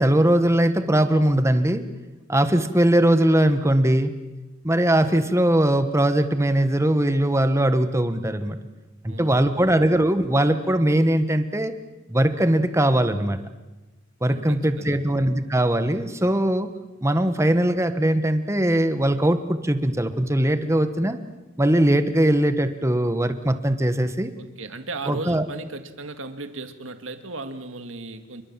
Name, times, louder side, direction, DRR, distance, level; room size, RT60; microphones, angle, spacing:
voice 1, 0.0-1.8 2.3-4.1 4.6-8.6 9.0-11.7 12.1-13.4 14.2-16.7 17.0-21.2 21.6-24.3 25.1-25.4, right 1 dB, 15° right, 10 dB, 1.3 m, -20 dB
voice 2, 14.2-15.0 24.4-28.4, right 3 dB, 70° right, 8 dB, 2.1 m, -36 dB
28.0 x 23.0 x 7.5 m, 1.1 s
head